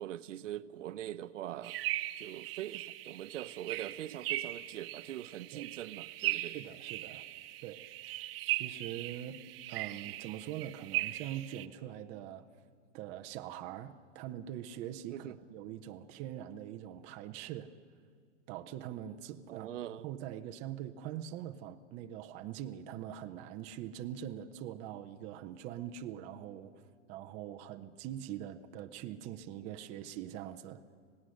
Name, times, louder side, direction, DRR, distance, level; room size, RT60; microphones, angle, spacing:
voice 1, 0.0-1.8 2.2-6.6 15.1-15.4 19.5-20.1, right 12 dB, 85° right, 0.9 m, -42 dB
sound 1, 1.6-11.7, right 16 dB, 50° right, 0.9 m, -39 dB
voice 2, 6.5-7.2 7.6-8.2 8.6-9.4 9.7-12.5 12.9-17.7 18.5-19.7 20.0-26.7 27.1-30.8, right 11 dB, 20° right, 0.5 m, -43 dB
26.0 x 17.5 x 6.4 m
supercardioid pair, 155°, 36 cm